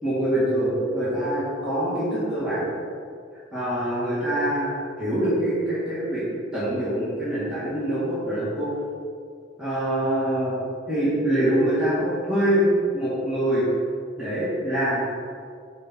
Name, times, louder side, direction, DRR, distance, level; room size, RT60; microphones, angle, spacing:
voice 1, 0.0-2.7 3.5-6.2 6.5-8.7 9.6-10.5 10.9-12.7 12.9-13.6 14.2-15.2, right 1 dB, 5° right, -12 dB, 1.8 m, -24 dB
6.5 x 4.0 x 6.1 m, 2.3 s
head